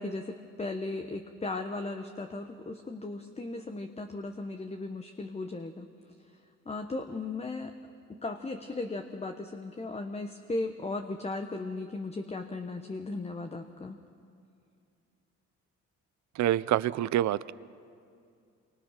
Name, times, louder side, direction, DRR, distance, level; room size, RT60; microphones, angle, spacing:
voice 1, 0.0-5.9 6.6-7.7 8.1-14.0, left 2 dB, 20° left, 6 dB, 1.1 m, -36 dB
voice 2, 16.4-17.5, right 13 dB, 65° right, 18 dB, 0.6 m, -26 dB
26.5 x 24.5 x 5.9 m, 2.5 s
cardioid pair, 90°, 30 cm